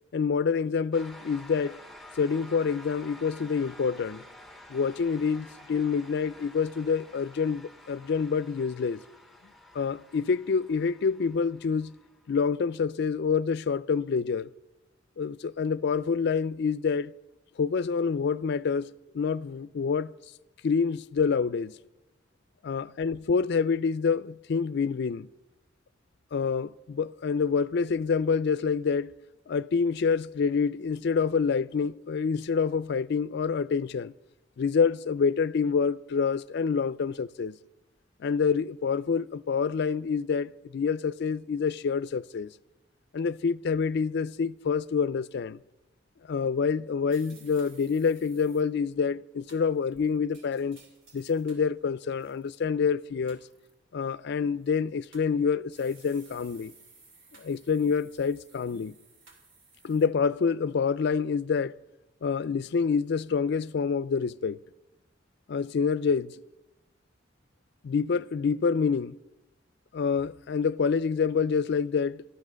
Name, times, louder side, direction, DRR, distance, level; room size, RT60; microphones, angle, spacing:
voice 1, 0.1-1.8 2.2-4.2 4.7-9.0 9.7-11.9 12.3-14.5 15.2-17.1 17.6-20.1 20.6-21.8 22.6-25.3 26.3-29.1 29.5-34.1 34.6-37.6 38.2-42.5 43.1-45.6 46.3-50.8 51.1-53.4 53.9-56.7 57.4-58.9 59.8-61.8 62.2-64.6 65.5-66.4 67.8-69.2 69.9-72.2, left 5 dB, 60° left, 0.4 m, -27 dB
sound 1, 0.9-12.4, left 1 dB, ahead, 0.9 m, -51 dB
sound 2, 47.1-48.6 49.5-51.7 52.1-52.6 53.3-53.7 54.6-55.3 55.7-60.1, right 4 dB, 80° right, 2.8 m, -57 dB
13.0 x 12.5 x 6.3 m
head